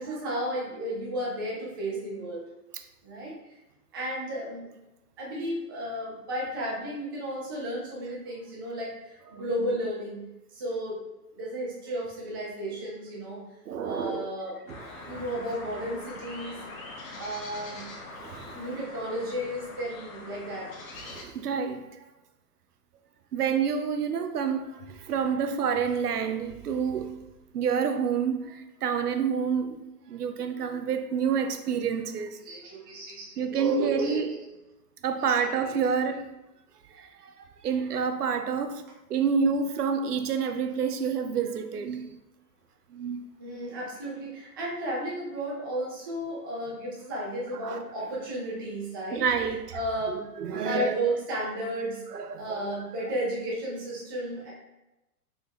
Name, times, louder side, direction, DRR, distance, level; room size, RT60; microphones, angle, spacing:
voice 1, 0.0-2.4 3.0-3.6 3.9-4.7 5.2-10.2 10.5-11.0 11.3-13.4 13.8-14.6 15.0-16.6 17.2-17.9 18.5-20.7 27.5-27.6 32.4-34.2 35.2-35.8 43.4-49.3 49.7-50.2 50.5-52.0 52.4-54.5, right 1 dB, 15° right, 0.3 m, -33 dB
voice 2, 13.7-14.3 15.0-15.2 18.2-18.6 21.1-21.9 23.3-27.2 27.5-32.4 33.4-34.5 35.0-36.3 36.9-37.3 37.6-38.8 39.1-42.2 42.9-43.2 47.6-47.8 49.1-49.8 50.1-51.0 52.1-52.6, right 6 dB, 80° right, 0.6 m, -28 dB
sound 1, 14.7-21.2, left 2 dB, 60° left, 0.9 m, -43 dB
4.0 x 2.5 x 3.1 m
figure-of-eight pair, 110°, 46 cm